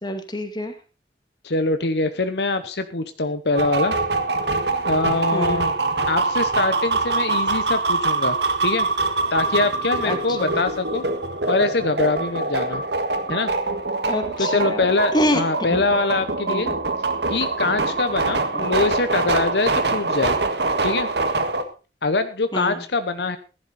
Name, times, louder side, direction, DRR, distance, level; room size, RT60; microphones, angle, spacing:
voice 1, 0.0-0.7 5.3-5.7 10.0-10.6 14.1-15.4 15.7-15.8 16.5-16.8 18.5-18.7 22.5-22.8, left 1 dB, 25° left, 7 dB, 2.1 m, -26 dB
voice 2, 1.4-3.9 4.9-5.7 6.1-8.4 8.6-8.9 9.3-11.0 11.5-12.8 13.3-13.5 14.4-16.7 17.3-20.4 20.8-21.1 22.0-23.4, left 3 dB, 70° left, 10 dB, 1.0 m, -23 dB
sound 1, 3.6-21.6, right 3 dB, 75° right, 1.7 m, -24 dB
15.0 x 11.0 x 4.3 m, 0.33 s
head